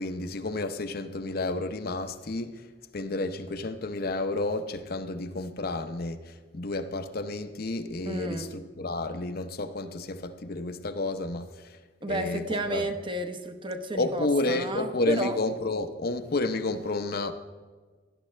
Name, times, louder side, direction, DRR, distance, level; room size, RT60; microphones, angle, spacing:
voice 1, 0.0-2.6 2.9-11.8 12.1-12.8 13.9-17.3, left 2 dB, 55° left, 7 dB, 0.8 m, -31 dB
voice 2, 8.0-8.5 12.0-15.4, right 1 dB, 30° right, 6 dB, 0.9 m, -32 dB
18.0 x 11.5 x 3.3 m, 1.4 s
head